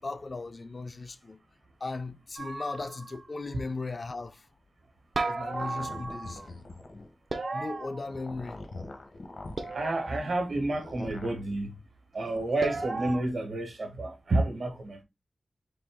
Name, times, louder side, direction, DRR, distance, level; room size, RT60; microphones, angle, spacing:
voice 1, 0.0-1.4 1.8-4.5 5.3-6.4 7.5-8.6 10.1-10.4, left 3 dB, 45° left, 0.4 m, -37 dB
sound 1, 2.4-3.3 5.1-6.5 7.3-8.6 9.6-10.4 12.6-13.2, right 3 dB, 55° right, 0.5 m, -35 dB
sound 2, 5.5-7.1 8.0-9.8 10.7-11.4 12.2-13.2, left 2 dB, 70° left, 0.9 m, -43 dB
voice 2, 9.7-11.7 12.1-15.0, right 2 dB, 75° right, 1.3 m, -30 dB
4.1 x 2.8 x 3.4 m
wide cardioid pair, 100°, 0 cm